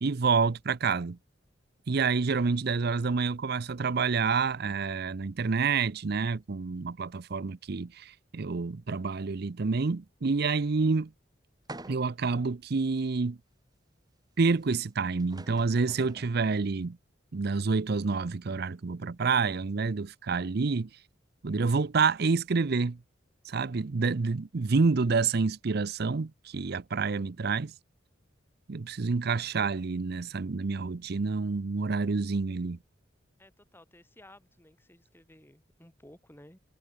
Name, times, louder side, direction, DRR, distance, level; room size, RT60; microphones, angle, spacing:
voice 1, 0.0-1.2 1.9-11.1 11.9-13.4 14.4-17.0 17.3-20.9 21.4-23.0 23.5-27.7 28.7-32.8, right 4 dB, 55° right, 0.6 m, -28 dB
sound 1, 11.7-12.3 12.9-13.0 14.8-14.9 15.2-16.4, right 2 dB, 20° right, 3.7 m, -46 dB
voice 2, 33.4-36.6, left 1 dB, 10° left, 4.6 m, -55 dB
head